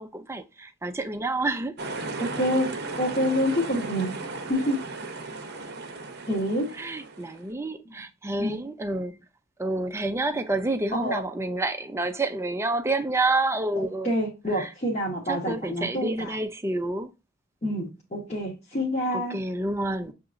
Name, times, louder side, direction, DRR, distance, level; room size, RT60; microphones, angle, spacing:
voice 1, 0.0-1.8 6.7-9.2 9.6-14.1 14.5-14.7 15.3-17.1 19.1-20.1, right 2 dB, 10° right, 0.4 m, -29 dB
sound 1, 1.8-7.5, right 3 dB, 50° right, 0.7 m, -35 dB
voice 2, 2.2-2.7 3.0-4.2 4.5-4.8 6.3-6.7 8.4-8.6 10.9-11.2 14.0-16.4 17.6-19.4, equal, 30° left, 1.1 m, -27 dB
6.6 x 2.9 x 2.4 m
head